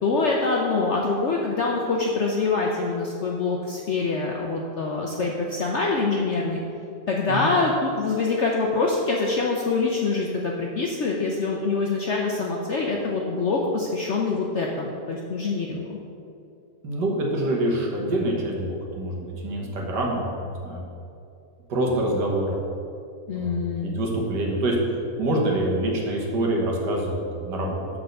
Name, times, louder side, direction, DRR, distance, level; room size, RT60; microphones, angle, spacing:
voice 1, 0.0-6.6 7.1-16.0 23.3-23.9, left 3 dB, 65° left, -1 dB, 0.7 m, -25 dB
voice 2, 16.8-20.3 20.6-20.8 21.7-22.6 23.3-24.8 25.2-27.9, right 1 dB, 70° right, -1 dB, 1.8 m, -26 dB
6.4 x 4.6 x 6.5 m, 2.6 s
omnidirectional pair, 1.9 m